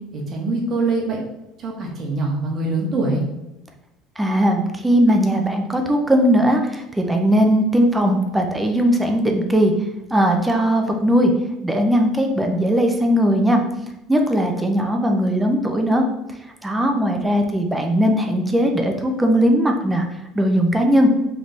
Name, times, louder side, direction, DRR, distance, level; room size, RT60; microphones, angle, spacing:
voice 1, 0.1-1.2 1.6-3.2, right 2 dB, 30° right, -1 dB, 0.9 m, -23 dB
voice 2, 4.2-9.7 10.1-11.3 11.6-13.6 14.1-16.0 16.6-20.0 20.4-21.1, equal, 5° right, 3 dB, 0.4 m, -18 dB
3.4 x 3.1 x 4.0 m, 0.93 s
cardioid pair, 175°, 0 cm